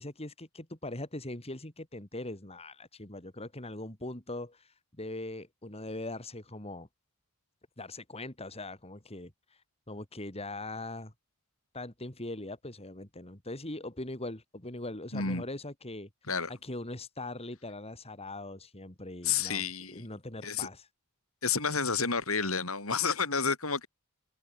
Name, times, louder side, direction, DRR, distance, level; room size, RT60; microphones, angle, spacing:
voice 1, 0.0-6.9 7.8-9.3 9.9-11.1 11.7-16.1 16.6-20.9, left 2 dB, 30° left, 3.4 m, -41 dB
voice 2, 15.1-15.5 16.3-16.5 19.2-20.1 20.4-20.7 21.4-23.9, left 5 dB, 85° left, 7.5 m, -30 dB
open air
head